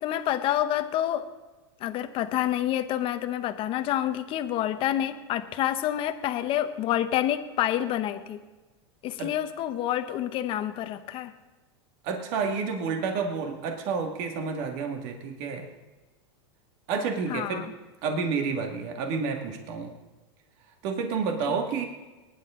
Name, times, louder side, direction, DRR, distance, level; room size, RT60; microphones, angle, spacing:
voice 1, 0.0-1.3 1.8-8.4 9.0-11.3 17.3-17.7 21.5-21.6, left 12 dB, 35° left, 10 dB, 0.9 m, -28 dB
voice 2, 12.0-15.7 16.9-17.7 18.0-19.9 20.8-21.8, right 5 dB, 50° right, 3 dB, 2.0 m, -30 dB
22.0 x 10.5 x 3.7 m, 1.2 s
supercardioid pair, 140°, 15 cm